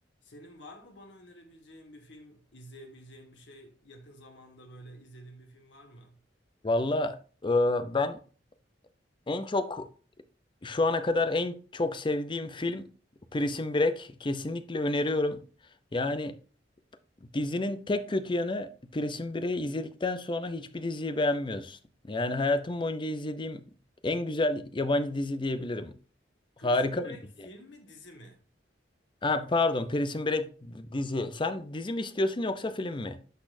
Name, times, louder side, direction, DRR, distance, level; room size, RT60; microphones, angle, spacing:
voice 1, 0.2-6.2 26.6-28.4, equal, 85° left, 1.7 m, -50 dB
voice 2, 6.6-8.2 9.3-9.9 10.6-12.8 13.3-15.4 15.9-16.4 17.3-21.8 22.1-23.6 24.0-25.9 26.6-27.2 29.2-33.2, left 2 dB, 25° left, 0.6 m, -29 dB
11.5 x 4.2 x 2.6 m
head